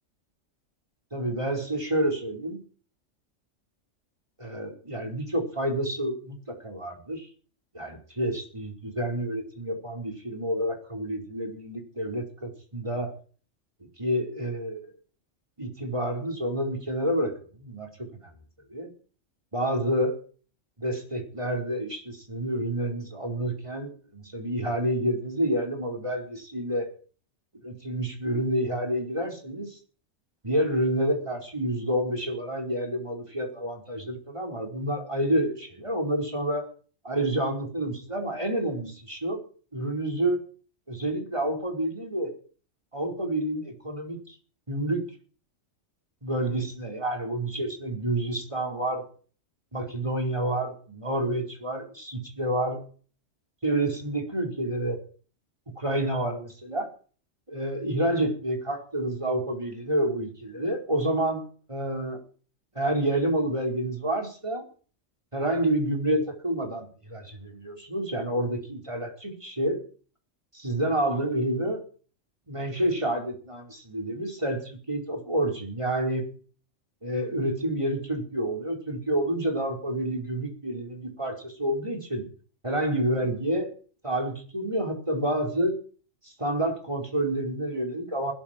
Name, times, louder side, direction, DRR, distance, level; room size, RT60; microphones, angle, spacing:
voice 1, 1.1-2.6 4.4-7.3 7.7-13.1 14.0-14.9 15.6-17.3 17.6-18.2 18.7-18.9 19.5-20.2 20.8-26.9 27.6-29.8 30.4-36.7 37.0-39.4 39.7-40.4 40.9-42.3 42.9-44.3 44.7-45.0 46.2-49.0 49.7-52.8 53.6-55.0 55.8-56.9 57.5-61.4 61.7-62.2 62.7-64.6 65.3-69.8 70.5-71.8 72.5-76.3 77.0-82.3 82.6-83.7 84.0-85.8 86.2-88.3, right 1 dB, 25° right, 2 dB, 4.8 m, -29 dB
20.5 x 12.5 x 4.6 m, 0.40 s
omnidirectional pair, 1.3 m